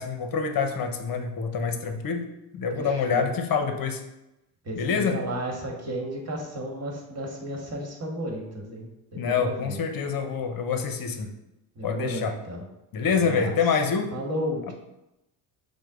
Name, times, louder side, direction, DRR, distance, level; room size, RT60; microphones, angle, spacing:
voice 1, 0.0-2.3 2.5-4.0 4.8-5.2 9.2-11.3 11.8-12.3 12.9-14.1, left 5 dB, 45° left, 6 dB, 0.8 m, -26 dB
voice 2, 2.7-3.3 4.6-9.8 11.7-12.6 13.0-13.5 14.1-14.7, equal, 30° right, 1 dB, 1.6 m, -33 dB
6.1 x 2.2 x 3.7 m, 0.93 s
supercardioid pair, 65°, 50 cm